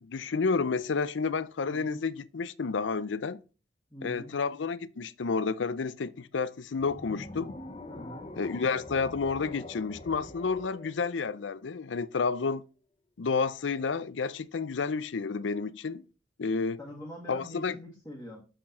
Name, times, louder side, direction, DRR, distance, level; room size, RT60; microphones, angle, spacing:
voice 1, 0.0-3.4 4.0-7.5 8.4-12.6 13.2-16.0 16.4-16.8 17.3-17.8, left 4 dB, 80° left, 0.5 m, -30 dB
voice 2, 1.6-2.0 3.9-4.4 7.9-8.3 16.8-18.4, left 1 dB, 10° left, 1.5 m, -44 dB
sound 1, 6.8-12.0, left 2 dB, 30° left, 0.7 m, -45 dB
6.7 x 6.0 x 4.2 m
head